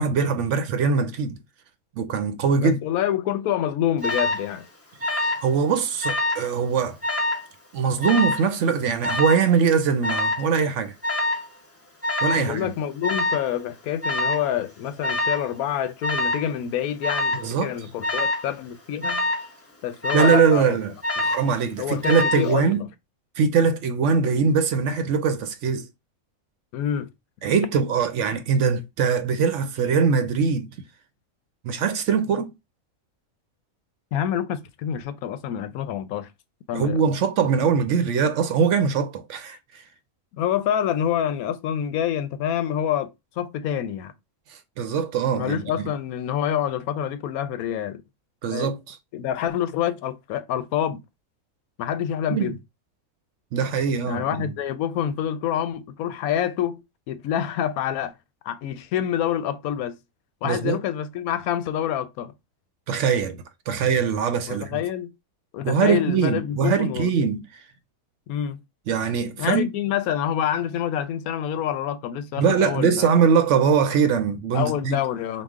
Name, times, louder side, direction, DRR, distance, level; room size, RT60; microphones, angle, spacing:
voice 1, 0.0-1.4 2.0-2.8 5.0-7.0 7.7-11.0 12.2-12.7 17.3-17.7 20.1-20.9 21.2-22.8 23.4-25.8 27.4-30.7 31.6-32.5 36.7-39.8 44.5-45.9 48.4-49.0 52.3-52.5 53.5-54.5 60.4-60.8 62.9-64.8 65.6-67.6 68.9-69.7 72.4-75.0, right 6 dB, 65° right, 0.8 m, -22 dB
voice 2, 2.6-4.6 12.3-19.3 19.8-20.8 21.2-21.3 21.8-22.8 26.7-27.1 34.1-36.3 36.7-37.0 40.3-43.1 43.4-44.1 45.3-48.0 48.5-48.7 49.1-51.0 51.8-52.6 54.1-56.8 57.1-58.1 58.4-60.0 60.4-62.3 64.5-65.1 65.5-67.1 68.3-68.6 69.4-73.1 74.5-75.4, left 10 dB, 85° left, 1.0 m, -27 dB
Alarm, 4.0-4.5 5.0-5.5 5.8-6.5 7.0-7.4 8.0-8.5 9.0-9.5 10.0-10.5 11.0-11.5 12.0-12.5 13.0-13.5 14.0-14.5 15.0-15.5 16.0-16.5 17.0-17.5 18.0-18.5 19.0-19.5 20.0-20.5 21.0-21.5 22.0-22.5, left 1 dB, 15° left, 0.6 m, -25 dB
5.0 x 2.3 x 3.5 m
omnidirectional pair, 1.5 m